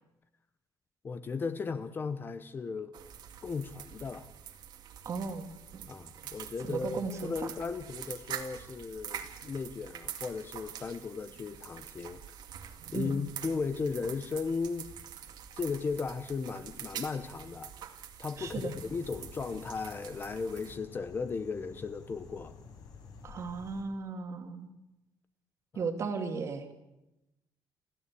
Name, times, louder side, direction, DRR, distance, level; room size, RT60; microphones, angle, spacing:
voice 1, 1.0-3.0 3.4-4.3 5.9-12.2 12.9-14.9 15.5-17.7 18.2-22.6 25.7-25.9, left 4 dB, 25° left, 11 dB, 0.9 m, -36 dB
sound 1, 2.9-20.8, right 9 dB, 65° right, 2.1 m, -46 dB
voice 2, 5.0-5.5 6.6-7.3 12.9-13.2 18.4-18.7 23.2-24.7 25.8-26.7, right 4 dB, 40° right, 5 dB, 2.4 m, -35 dB
sound 2, 18.4-23.8, left 4 dB, 60° left, 5.9 m, -51 dB
30.0 x 13.0 x 8.4 m, 0.97 s
cardioid pair, 175°, 8 cm